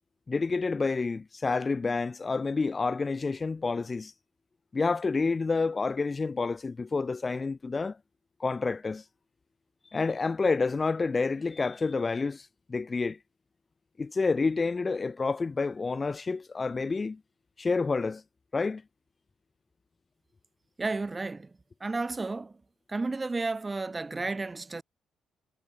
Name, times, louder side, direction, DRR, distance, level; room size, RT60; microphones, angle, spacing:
voice 1, 0.3-4.1 4.7-8.0 8.4-9.0 9.9-13.2 14.0-17.2 17.6-18.2 18.5-18.8, left 4 dB, 30° left, 0.9 m, -29 dB
voice 2, 20.8-21.5 21.8-22.5 22.9-24.8, right 3 dB, 25° right, 1.0 m, -32 dB
cardioid pair, 90°, 0 cm